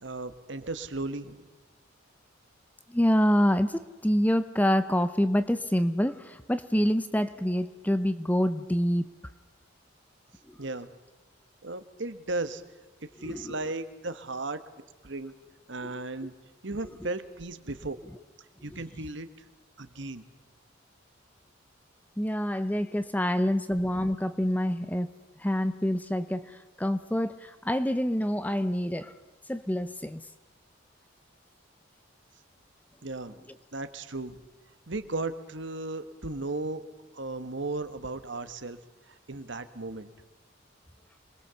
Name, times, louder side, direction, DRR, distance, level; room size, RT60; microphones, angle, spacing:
voice 1, 0.0-1.4 10.6-10.9 11.6-12.6 13.0-14.6 15.0-15.3 15.7-16.3 16.6-18.0 18.6-19.3 19.8-20.2 33.0-33.4 33.7-34.4 34.9-36.8 37.1-38.8 39.1-40.1, right 2 dB, 65° right, 11 dB, 1.4 m, -35 dB
voice 2, 2.9-9.1 10.5-10.6 13.3-13.6 15.8-15.9 18.7-18.8 22.2-25.1 25.4-29.1 29.5-30.2, equal, 10° left, 12 dB, 0.7 m, -27 dB
26.5 x 21.0 x 7.0 m, 1.2 s
head